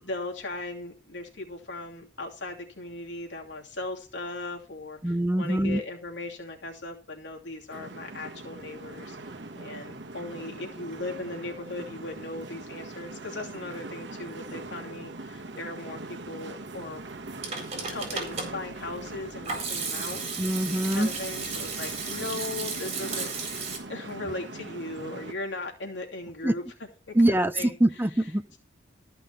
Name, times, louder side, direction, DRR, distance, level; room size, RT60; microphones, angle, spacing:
voice 1, 0.1-17.1 17.9-20.5 20.9-23.3 23.9-26.6 27.1-27.8, left 2 dB, 70° left, 2.8 m, -38 dB
voice 2, 5.0-5.8 20.4-21.1 26.4-26.5 27.1-28.4, right 1 dB, 10° right, 0.7 m, -24 dB
sound 1, 7.7-25.3, right 2 dB, 70° right, 1.3 m, -41 dB
Hands / Sink (filling or washing), 17.1-23.8, right 4 dB, 35° right, 4.2 m, -34 dB
14.0 x 5.7 x 6.8 m
head